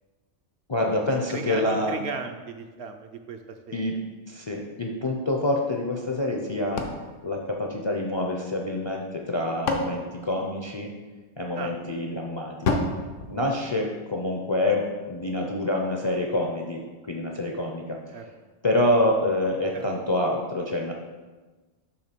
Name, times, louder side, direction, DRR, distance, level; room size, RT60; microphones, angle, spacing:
voice 1, 0.7-2.0 3.7-3.9 4.3-6.9 7.2-10.9 11.4-12.9 13.3-16.8 17.1-18.0 18.6-20.9, left 1 dB, 35° left, 1 dB, 0.4 m, -27 dB
voice 2, 1.3-4.0 11.5-11.7 13.5-13.6 18.1-18.3 19.7-19.9, right 5 dB, 65° right, 6 dB, 0.8 m, -36 dB
sound 1, 6.8-8.3 9.2-11.1 12.6-14.2, left 3 dB, 85° left, 1.1 m, -31 dB
6.6 x 3.5 x 5.9 m, 1.3 s
omnidirectional pair, 1.2 m